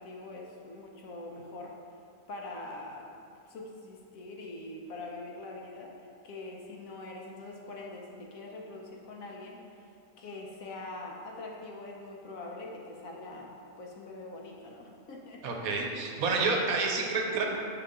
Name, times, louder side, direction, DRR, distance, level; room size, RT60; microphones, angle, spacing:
voice 1, 0.0-1.8 2.3-3.2 3.5-9.8 10.2-15.5, left 2 dB, 70° left, -1 dB, 1.1 m, -43 dB
voice 2, 15.4-17.4, right 4 dB, 70° right, 1 dB, 1.1 m, -29 dB
6.8 x 3.9 x 3.6 m, 2.5 s
omnidirectional pair, 1.6 m